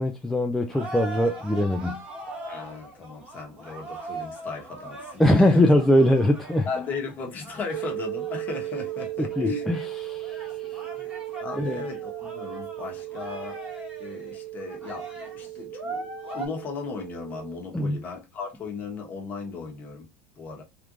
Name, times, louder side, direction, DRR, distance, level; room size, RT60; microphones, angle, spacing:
voice 1, 0.0-2.0 5.2-6.7 9.4-9.7 10.1-10.8 11.6-11.8 17.7-18.0, left 1 dB, 5° left, 0.3 m, -22 dB
sound 1, 0.6-16.5, right 2 dB, 15° right, 1.2 m, -41 dB
voice 2, 2.5-5.7 6.7-9.7 11.4-13.7 14.0-20.1 20.4-20.6, left 4 dB, 30° left, 1.1 m, -36 dB
sound 2, 7.7-17.6, right 16 dB, 65° right, 0.5 m, -36 dB
3.5 x 3.0 x 2.4 m
cardioid pair, 160°, 6 cm